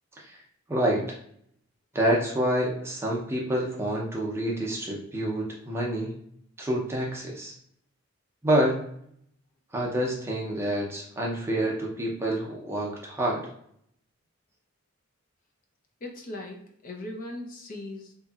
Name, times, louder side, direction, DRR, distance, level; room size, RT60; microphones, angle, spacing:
voice 1, 0.7-1.1 1.9-6.1 6.6-7.5 8.4-8.8 9.7-13.4, right 1 dB, 10° right, -3 dB, 0.5 m, -27 dB
voice 2, 16.0-18.1, left 1 dB, 40° left, 1 dB, 0.5 m, -39 dB
2.9 x 2.6 x 2.3 m, 0.69 s
head